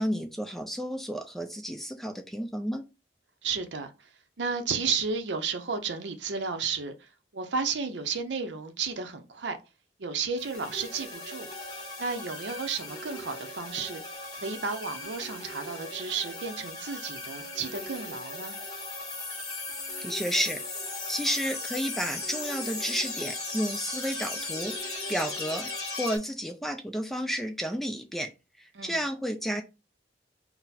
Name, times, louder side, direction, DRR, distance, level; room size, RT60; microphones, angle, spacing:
voice 1, 0.0-2.8 20.0-20.6 21.1-24.7 25.1-25.7 26.0-28.3 28.6-29.6, equal, ahead, 0.3 m, -31 dB
voice 2, 3.4-3.9 4.4-7.1 7.3-9.6 10.0-11.5 12.0-14.0 14.3-18.6 28.7-29.0, right 5 dB, 90° right, 0.6 m, -32 dB
sound 1, 10.4-26.2, left 2 dB, 25° left, 1.2 m, -37 dB
4.1 x 2.1 x 4.1 m
head